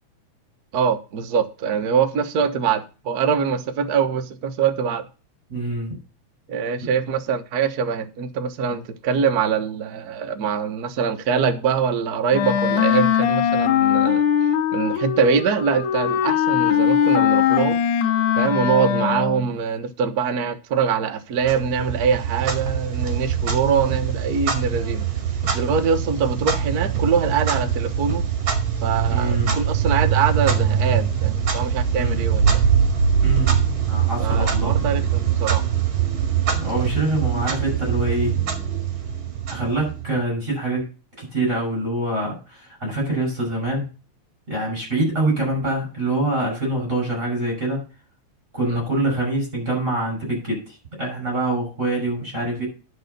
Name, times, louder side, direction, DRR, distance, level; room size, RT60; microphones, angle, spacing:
voice 1, 0.7-5.1 6.5-14.2 14.7-17.8 18.4-25.1 25.5-28.2 28.8-32.6 34.2-35.6 48.7-48.8, right 6 dB, 80° right, 0.8 m, -23 dB
voice 2, 5.5-6.0 29.1-29.6 31.9-32.2 33.2-33.6 33.8-34.9 36.6-38.3 39.5-40.8 41.2-43.8 44.5-47.8 48.5-50.6 51.0-52.7, right 2 dB, 25° right, 6.1 m, -25 dB
Wind instrument woodwind instrument, 12.3-19.5, left 9 dB, 90° left, 2.4 m, -20 dB
Clock, 21.4-40.2, right 7 dB, 45° right, 2.6 m, -23 dB
10.5 x 5.2 x 6.7 m
omnidirectional pair, 3.3 m